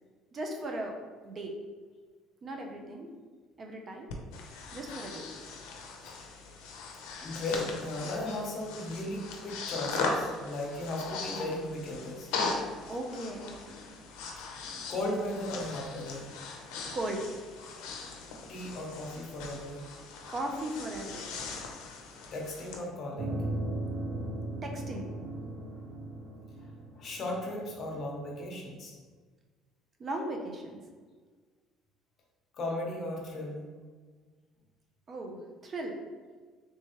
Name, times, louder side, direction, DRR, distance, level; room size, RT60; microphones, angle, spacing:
voice 1, 0.3-1.0 1.2-1.5 2.4-3.1 3.6-4.1 4.7-5.2 12.9-14.0 16.9-17.2 20.3-21.2 24.6-25.1 30.0-30.8 35.1-35.9, right 1 dB, 35° right, 2 dB, 0.5 m, -37 dB
Breathing, 4.1-22.8, left 4 dB, 90° left, 0.5 m, -39 dB
voice 2, 7.2-12.3 12.8-12.9 13.4-13.5 14.4-14.6 14.9-16.3 18.5-19.8 22.2-23.4 27.0-28.9 32.5-33.7, left 1 dB, 45° left, -1 dB, 0.9 m, -36 dB
sound 1, 23.2-28.1, right 1 dB, 85° right, 0.5 m, -37 dB
3.4 x 3.1 x 2.9 m, 1.5 s
cardioid pair, 115°, 0 cm